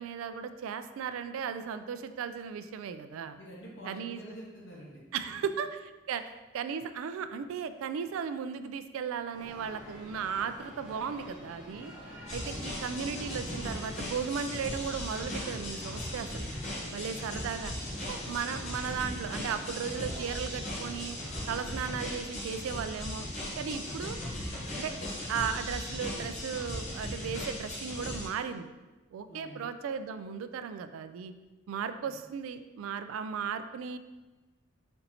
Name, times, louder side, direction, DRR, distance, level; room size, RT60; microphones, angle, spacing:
voice 1, 0.0-3.4 3.9-4.2 5.1-6.2 6.5-11.9 12.3-16.5 16.9-17.7 18.0-21.2 21.5-23.3 23.6-24.2 24.8-24.9 25.3-28.7 29.1-31.3 31.7-34.0, right 7 dB, 85° right, 11 dB, 0.3 m, -36 dB
voice 2, 3.4-5.0 5.4-5.5 6.2-6.3 12.3-12.7 16.6-17.1 29.3-29.6 32.0-32.1, equal, 65° left, -5 dB, 1.3 m, -48 dB
sound 1, 9.3-21.6, equal, 5° right, 1.0 m, -47 dB
sound 2, 12.3-28.3, left 1 dB, 35° left, 0.8 m, -38 dB
4.4 x 3.9 x 2.8 m, 1.2 s
head